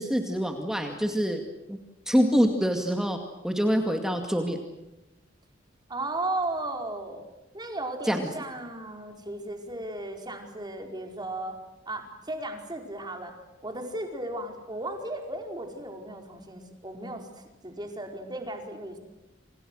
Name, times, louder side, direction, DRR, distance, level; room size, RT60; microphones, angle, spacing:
voice 1, 0.0-1.4 1.7-1.8 2.1-3.2 3.4-4.6 8.0-8.3, equal, 5° right, 4 dB, 2.2 m, -25 dB
voice 2, 5.9-7.2 7.5-11.5 11.9-13.3 13.6-17.3 17.6-19.0, right 2 dB, 20° right, 4 dB, 4.9 m, -35 dB
29.0 x 26.5 x 6.5 m, 0.99 s
head